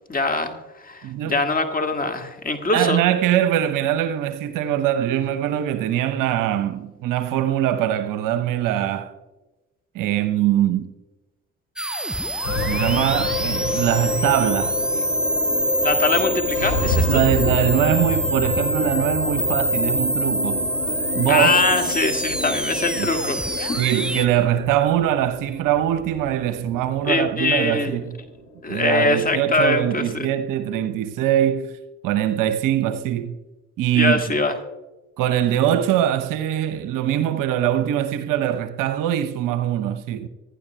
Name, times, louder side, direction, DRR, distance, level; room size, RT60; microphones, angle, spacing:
voice 1, 0.1-3.0 15.8-17.2 21.3-23.8 27.0-28.0 28.6-30.3 33.9-34.5, left 3 dB, 20° left, 1.7 m, -23 dB
voice 2, 1.0-1.4 2.7-9.1 9.9-10.9 12.5-15.0 17.1-20.7 21.1-21.6 23.0-23.1 23.8-28.2 28.7-31.8 32.0-33.4 33.8-34.2 35.2-40.3, right 11 dB, 50° right, 0.8 m, -22 dB
sound 1, 11.8-24.3, right 1 dB, ahead, 0.3 m, -26 dB
sound 2, 12.4-30.9, left 2 dB, 80° left, 3.5 m, -29 dB
25.0 x 11.5 x 2.3 m
figure-of-eight pair, 45°, 40 cm